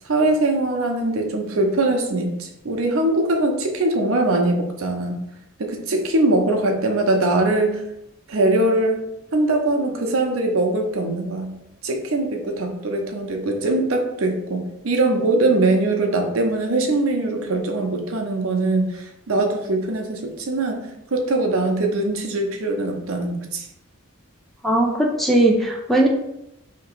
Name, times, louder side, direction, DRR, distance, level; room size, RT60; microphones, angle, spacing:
voice 1, 0.1-5.2 5.6-7.8 8.3-9.0 9.3-11.5 11.8-23.7, right 2 dB, 85° right, 3 dB, 0.7 m, -22 dB
voice 2, 24.6-26.1, right 1 dB, ahead, 0 dB, 0.4 m, -18 dB
3.0 x 2.8 x 4.4 m, 0.85 s
head